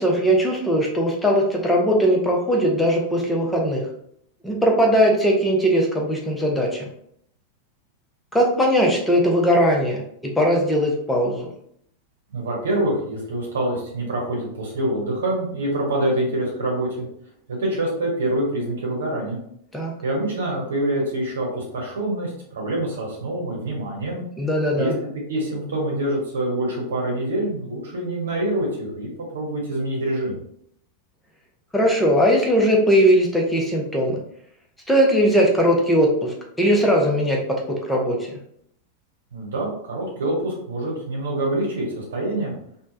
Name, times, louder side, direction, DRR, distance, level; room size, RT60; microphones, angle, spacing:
voice 1, 0.0-3.8 4.4-6.9 8.3-10.0 10.4-11.5 19.7-19.9 24.4-25.0 31.7-34.2 34.9-37.4 37.9-38.2, equal, 5° left, -1 dB, 0.6 m, -19 dB
voice 2, 12.3-17.1 17.5-19.4 20.0-24.2 24.8-30.4 39.3-42.5, right 1 dB, 65° right, -2 dB, 1.0 m, -26 dB
3.2 x 2.0 x 2.6 m, 0.68 s
figure-of-eight pair, 90°, 0 cm